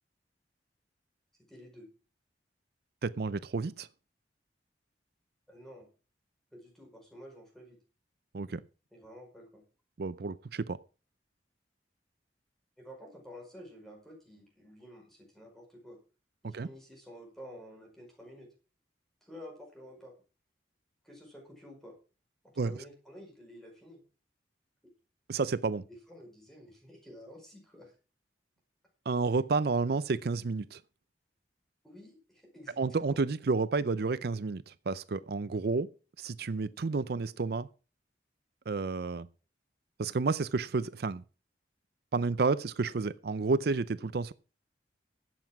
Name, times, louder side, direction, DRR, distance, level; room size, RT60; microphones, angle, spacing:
voice 1, 1.5-1.9 5.5-5.9 6.5-7.8 8.9-9.6 12.8-16.0 16.4-18.5 19.2-20.1 21.0-21.9 22.4-24.0 26.1-27.9 31.8-33.2, equal, ahead, 5.1 m, -51 dB
voice 2, 3.0-3.9 8.3-8.6 10.0-10.8 16.4-16.7 22.6-22.7 25.3-25.8 29.1-30.8 32.8-35.9 36.2-37.7 38.7-39.3 40.0-41.2 42.1-44.3, right 4 dB, 60° right, 0.5 m, -30 dB
11.5 x 7.9 x 6.0 m
head